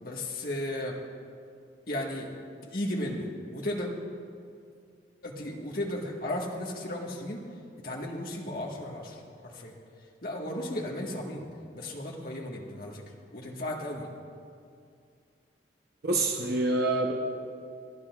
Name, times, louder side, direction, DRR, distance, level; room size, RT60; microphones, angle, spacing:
voice 1, 0.0-1.0 1.9-3.9 5.2-7.4 7.8-9.8 10.2-11.5 11.7-13.0 13.3-14.1, left 1 dB, 50° left, -1 dB, 1.6 m, -35 dB
voice 2, 16.0-17.1, right 2 dB, 60° right, 0 dB, 1.0 m, -26 dB
29.0 x 10.0 x 2.5 m, 2.3 s
head